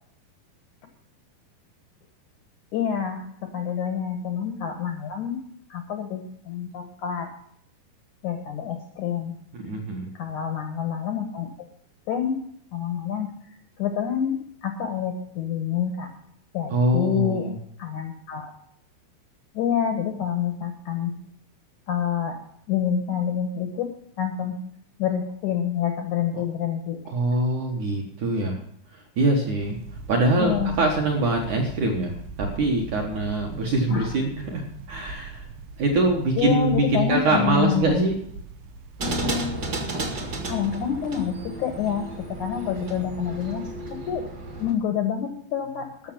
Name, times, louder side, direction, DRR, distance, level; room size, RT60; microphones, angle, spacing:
voice 1, 2.7-5.4 5.7-7.3 8.2-9.4 10.1-11.5 12.1-12.4 12.7-13.3 13.8-16.1 16.5-17.5 17.8-18.5 19.5-21.1 21.9-22.4 22.7-23.9 24.2-24.6 25.0-27.0 30.4-30.8 33.9-34.1 36.4-38.1 40.5-44.3 44.6-46.1, left 8 dB, 80° left, 6 dB, 1.7 m, -27 dB
voice 2, 9.5-10.1 16.7-17.6 27.1-28.6 28.9-29.8 30.1-35.4 35.8-38.1, right 2 dB, 65° right, 1 dB, 1.9 m, -24 dB
sound 1, 29.6-39.5, right 4 dB, 85° right, 3.5 m, -40 dB
sound 2, 39.0-44.7, right 1 dB, 50° right, 1.1 m, -32 dB
14.0 x 6.6 x 7.3 m, 0.68 s
omnidirectional pair, 5.3 m